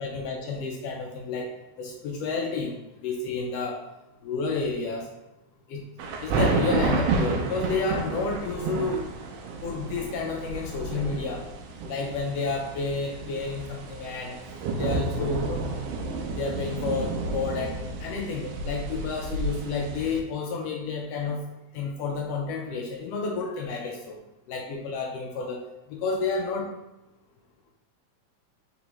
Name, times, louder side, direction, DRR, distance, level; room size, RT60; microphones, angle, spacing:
voice 1, 0.0-1.5 1.8-2.8 3.0-3.8 4.2-5.1 5.7-5.8 6.2-9.1 9.6-11.4 11.8-14.4 14.7-15.7 16.4-21.4 21.7-24.2 24.5-25.6 25.9-26.7, left 4 dB, 85° left, 1 dB, 1.4 m, -30 dB
sound 1, 6.0-20.2, right 3 dB, 80° right, 1.4 m, -31 dB
4.4 x 3.8 x 2.9 m, 0.95 s
omnidirectional pair, 3.3 m